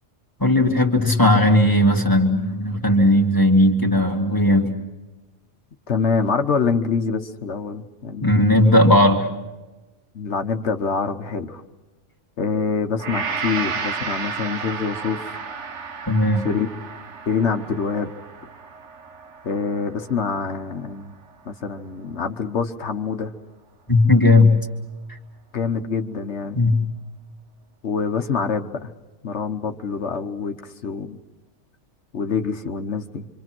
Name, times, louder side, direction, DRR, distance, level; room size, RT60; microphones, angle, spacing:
voice 1, 0.4-4.7 8.2-9.3 16.1-16.4 23.9-24.6 25.1-25.2 26.5-26.8, left 1 dB, 15° left, 2 dB, 2.2 m, -16 dB
voice 2, 5.9-8.5 10.1-11.6 12.4-15.5 16.4-16.7 17.3-18.1 19.4-21.1 21.4-23.3 25.5-26.6 27.8-28.9 29.2-31.2 32.1-33.3, left 5 dB, 70° left, 6 dB, 1.4 m, -25 dB
Gong, 13.0-21.3 21.8-21.9, right 5 dB, 75° right, 1.5 m, -33 dB
26.5 x 26.0 x 6.1 m, 1.1 s
omnidirectional pair, 1.2 m